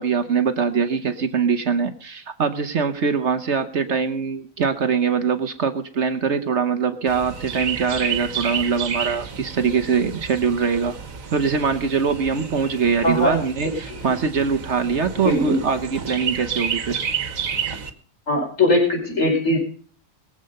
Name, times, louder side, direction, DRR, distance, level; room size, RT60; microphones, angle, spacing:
voice 1, 0.0-11.0 11.3-17.0, right 6 dB, 60° right, 10 dB, 1.2 m, -23 dB
Chirp tweet, 7.1-17.9, right 6 dB, 80° right, 1.8 m, -31 dB
voice 2, 13.0-13.3 13.9-14.0 15.2-15.6 18.3-19.6, left 1 dB, 65° left, 0 dB, 5.4 m, -20 dB
22.0 x 7.8 x 5.4 m, 0.43 s
omnidirectional pair, 1.4 m